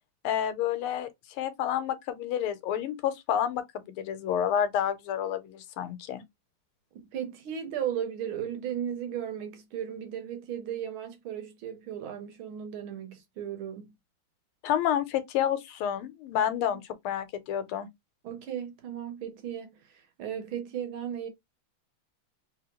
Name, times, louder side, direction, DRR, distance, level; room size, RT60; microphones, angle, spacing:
voice 1, 0.2-6.2 14.6-17.9, left 9 dB, 85° left, 1.6 m, -29 dB
voice 2, 6.9-13.9 18.2-21.3, right 9 dB, 75° right, 1.7 m, -36 dB
3.4 x 3.3 x 2.9 m
omnidirectional pair, 2.3 m